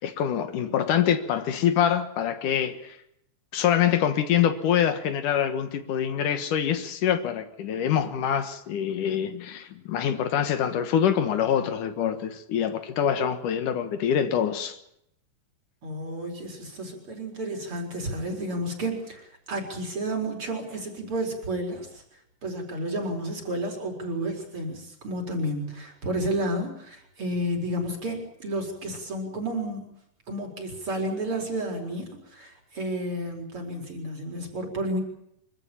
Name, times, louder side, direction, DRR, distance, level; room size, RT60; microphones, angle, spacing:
voice 1, 0.0-3.0 3.5-14.8, left 9 dB, 75° left, 3.0 m, -25 dB
voice 2, 15.8-22.0 22.4-29.9 30.3-35.0, right 1 dB, 40° right, 5.3 m, -31 dB
25.0 x 15.0 x 8.8 m
omnidirectional pair, 3.7 m